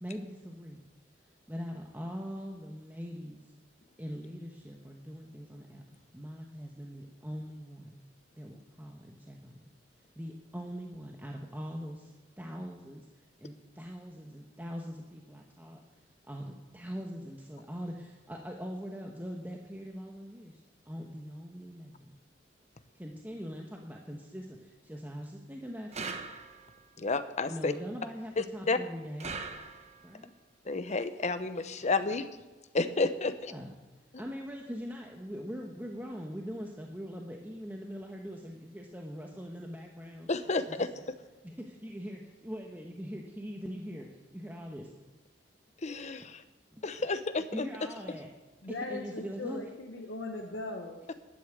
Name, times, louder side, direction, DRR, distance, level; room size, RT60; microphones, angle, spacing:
voice 1, 0.0-0.8 1.5-3.4 4.0-5.8 6.1-8.0 8.4-9.6 10.2-12.0 12.4-13.1 13.4-15.8 16.3-22.2 22.9-26.1 27.4-29.4 30.0-30.3 33.3-33.7 34.2-40.3 40.7-41.0 41.4-44.9 46.7-46.8 47.5-48.3 48.9-49.6, equal, 10° right, 1 dB, 1.1 m, -42 dB
sound 1, 25.9-26.8 29.2-30.1, right 4 dB, 40° right, 1.1 m, -40 dB
voice 2, 27.0-27.7 28.4-28.8 30.7-32.3 32.7-33.5 40.3-40.9 45.8-46.4 46.8-47.6, left 3 dB, 40° left, 11 dB, 0.8 m, -31 dB
voice 3, 48.6-51.1, left 2 dB, 80° left, 0 dB, 1.2 m, -39 dB
11.5 x 9.5 x 8.0 m, 1.1 s
head